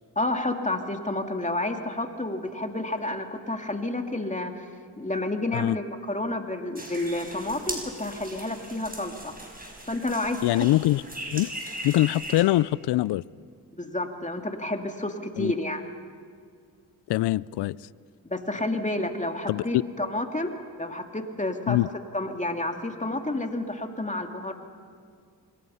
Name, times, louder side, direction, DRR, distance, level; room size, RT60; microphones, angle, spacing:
voice 1, 0.2-4.7 5.0-9.3 9.9-10.7 13.7-15.8 18.3-21.8 22.1-24.5, left 2 dB, 15° left, 2.7 m, -30 dB
sound 1, 6.7-12.4, right 1 dB, 20° right, 5.6 m, -39 dB
voice 2, 10.4-11.0 11.3-11.5 11.8-13.2 15.4-15.5 17.1-17.8 19.5-19.8 21.7-21.9, left 16 dB, 65° left, 0.5 m, -23 dB
25.0 x 22.0 x 5.7 m
supercardioid pair, 45°, 43 cm